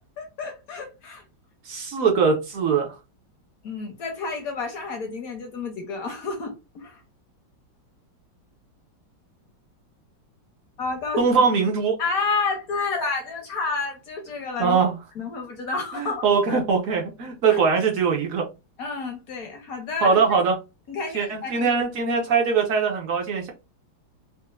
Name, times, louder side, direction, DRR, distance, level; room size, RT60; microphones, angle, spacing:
voice 1, 0.2-1.2 3.6-7.0 10.8-11.4 12.0-14.8 15.2-16.6 17.5-17.6 18.8-20.4 20.9-21.7, left 4 dB, 65° left, 0.9 m, -30 dB
voice 2, 1.7-2.9 11.2-12.0 14.6-15.0 15.9-18.5 20.0-20.6 21.1-23.5, right 5 dB, 60° right, 0.8 m, -21 dB
4.2 x 2.1 x 2.3 m
omnidirectional pair, 2.2 m